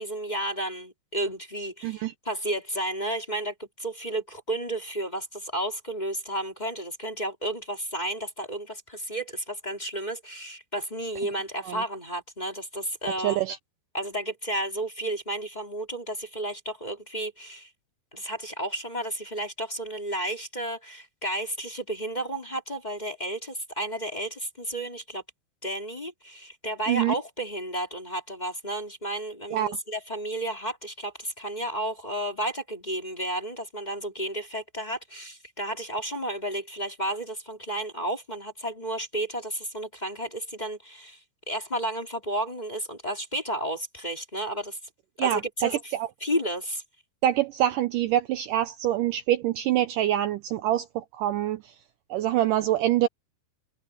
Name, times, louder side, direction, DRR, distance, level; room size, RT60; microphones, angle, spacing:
voice 1, 0.0-13.4 13.9-17.7 18.1-25.2 25.6-41.2 41.5-44.8 45.2-45.9 46.2-46.8, right 1 dB, 15° left, 2.2 m, -32 dB
voice 2, 13.2-13.6 26.9-27.1 29.5-29.8 45.2-46.1 47.2-51.6 52.1-53.1, right 12 dB, 90° right, 1.9 m, -25 dB
omnidirectional pair, 4.6 m